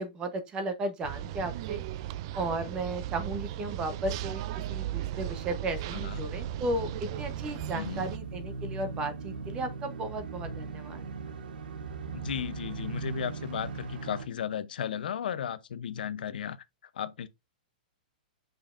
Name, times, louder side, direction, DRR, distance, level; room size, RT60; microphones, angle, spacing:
voice 1, 0.0-1.8 2.3-4.4 4.7-11.1, right 2 dB, 15° right, 0.8 m, -35 dB
sound 1, 1.0-8.2, right 13 dB, 35° right, 0.3 m, -36 dB
sound 2, 3.2-14.3, right 4 dB, 70° right, 1.0 m, -40 dB
voice 2, 5.9-6.2 7.7-8.1 12.1-16.6 16.9-17.3, left 9 dB, 75° left, 0.6 m, -35 dB
7.4 x 5.2 x 2.5 m
hypercardioid pair, 165°, 5 cm